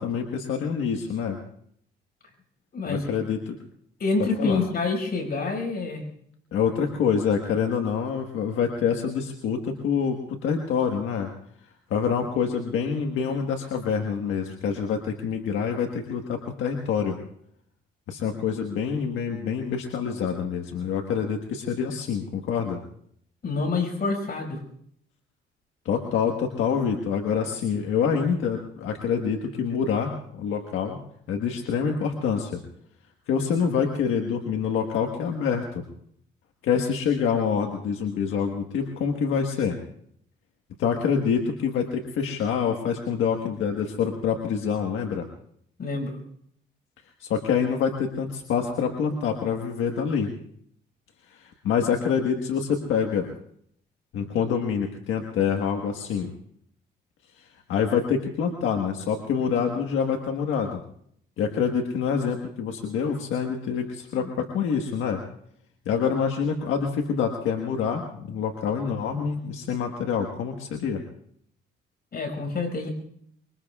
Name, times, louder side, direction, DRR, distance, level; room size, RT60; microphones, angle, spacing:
voice 1, 0.0-1.4 2.9-3.6 4.4-4.6 6.5-11.3 11.9-17.2 18.1-22.8 25.8-31.0 31.3-32.6 33.3-35.8 36.6-39.8 40.8-45.3 47.2-50.3 51.3-53.3 54.1-56.3 57.4-60.8 61.4-65.2 65.8-71.0, left 6 dB, 85° left, 3 dB, 1.5 m, -26 dB
voice 2, 2.7-3.1 4.0-6.1 23.4-24.6 45.8-46.2 72.1-72.9, left 3 dB, 50° left, 4 dB, 5.5 m, -27 dB
25.5 x 23.5 x 2.4 m, 0.67 s
cardioid pair, 90°, 20 cm